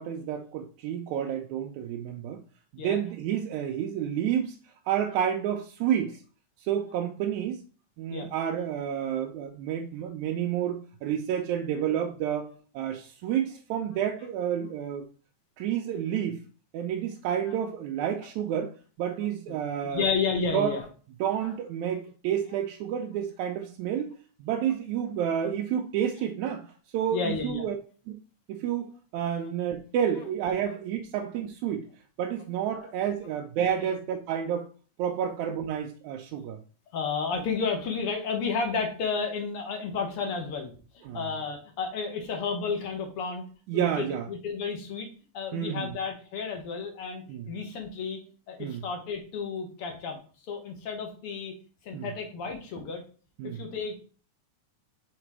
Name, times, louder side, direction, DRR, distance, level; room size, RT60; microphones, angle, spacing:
voice 1, 0.0-2.4 2.7-4.6 4.9-6.2 6.6-7.6 8.0-12.5 12.8-15.1 15.6-16.4 16.7-18.7 19.0-20.1 20.5-20.7 21.2-24.1 24.4-26.7 26.9-27.7 28.1-28.2 28.5-31.9 32.2-34.7 35.0-36.6 41.1-41.3 43.7-44.3 45.5-45.9 47.3-47.5 48.6-48.8 51.9-52.1 53.4-53.6, right 9 dB, 80° right, 1.9 m, -30 dB
voice 2, 19.2-20.9 21.4-21.6 22.5-22.6 25.4-25.5 27.1-27.7 29.3-29.5 30.2-30.3 30.6-30.7 32.8-32.9 33.8-33.9 35.2-35.3 36.9-43.4 43.7-45.1 45.3-48.2 48.5-50.2 50.5-51.6 51.8-53.0 53.4-54.0, left 5 dB, 60° left, 1.8 m, -32 dB
5.9 x 4.0 x 4.7 m
omnidirectional pair, 3.6 m